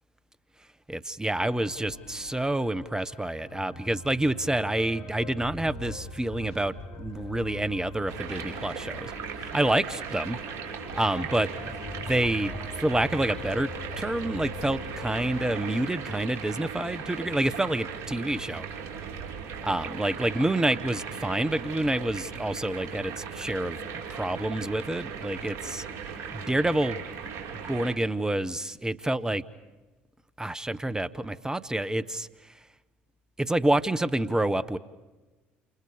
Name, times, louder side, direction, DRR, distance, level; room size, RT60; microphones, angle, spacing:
voice 1, 0.9-9.1 9.4-10.4 10.9-13.7 14.0-18.7 19.6-25.8 26.3-27.0 27.7-29.4 30.4-32.3 33.4-34.8, right 1 dB, 10° right, 16 dB, 1.2 m, -28 dB
sound 1, 1.3-15.9, left 2 dB, 65° left, 3.8 m, -43 dB
sound 2, 8.1-27.9, right 6 dB, 55° right, 4.2 m, -38 dB
30.0 x 28.5 x 5.1 m, 1.2 s
hypercardioid pair, 65°, 6 cm